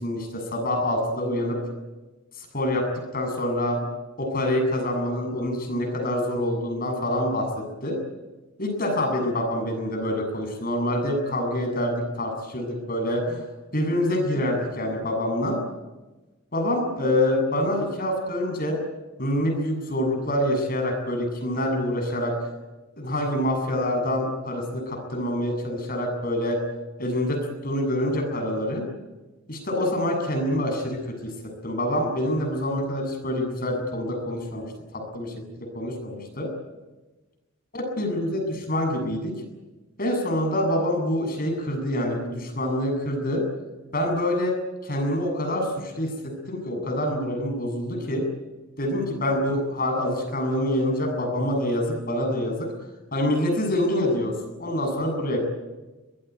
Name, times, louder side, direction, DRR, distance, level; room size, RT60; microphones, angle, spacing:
voice 1, 0.0-1.6 2.3-3.8 4.2-8.0 8.6-13.4 13.7-15.6 16.5-18.8 19.2-22.3 23.0-26.6 27.0-28.9 29.5-35.3 35.6-36.5 37.7-39.3 40.0-43.4 43.9-48.3 48.8-52.7 53.1-54.3 54.6-55.4, left 1 dB, 45° left, 4 dB, 7.6 m, -26 dB
23.5 x 20.5 x 9.5 m, 1.1 s
head